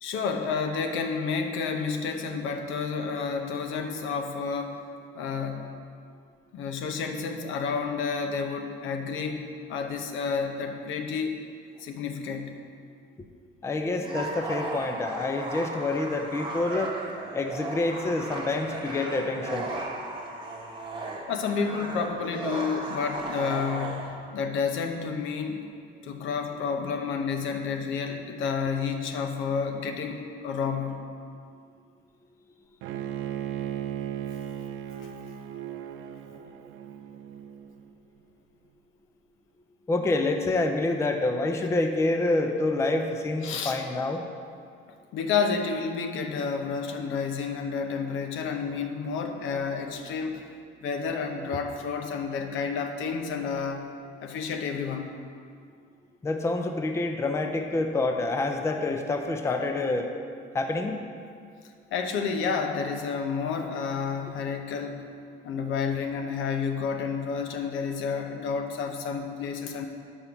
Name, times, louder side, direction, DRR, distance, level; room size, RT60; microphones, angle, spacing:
voice 1, 0.0-4.8 5.1-5.7 6.5-11.4 11.8-12.6 21.3-25.6 26.0-31.0 35.0-35.1 43.4-43.8 45.1-50.4 50.8-53.9 54.2-55.1 61.9-65.0 65.4-69.9, left 5 dB, 75° left, 5 dB, 0.8 m, -30 dB
voice 2, 13.6-16.9 17.3-19.7 39.9-44.2 56.2-60.1 60.5-61.0, left 2 dB, 15° left, 4 dB, 0.4 m, -27 dB
sound 1, 14.0-24.1, right 2 dB, 25° right, 1.1 m, -36 dB
Bowed string instrument, 32.8-37.9, right 10 dB, 80° right, 0.5 m, -36 dB
6.7 x 5.6 x 5.9 m, 2.3 s
cardioid pair, 155°, 20 cm